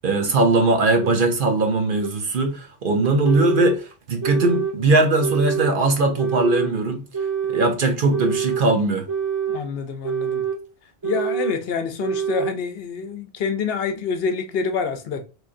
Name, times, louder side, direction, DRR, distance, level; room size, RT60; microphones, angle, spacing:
voice 1, 0.0-7.0 7.5-9.1, right 2 dB, 55° right, 0.8 m, -20 dB
sound 1, 1.0-1.1 2.0-2.1 3.0-3.8 4.2-4.8 5.2-5.8 6.2-6.7 7.1-7.7 8.1-8.7 9.1-9.6 10.0-10.6 11.0-11.6 12.0-12.6, right 7 dB, 25° right, 1.0 m, -25 dB
voice 2, 9.5-10.4 11.0-15.2, left 5 dB, 70° left, 0.8 m, -27 dB
3.6 x 3.1 x 2.5 m
omnidirectional pair, 1.1 m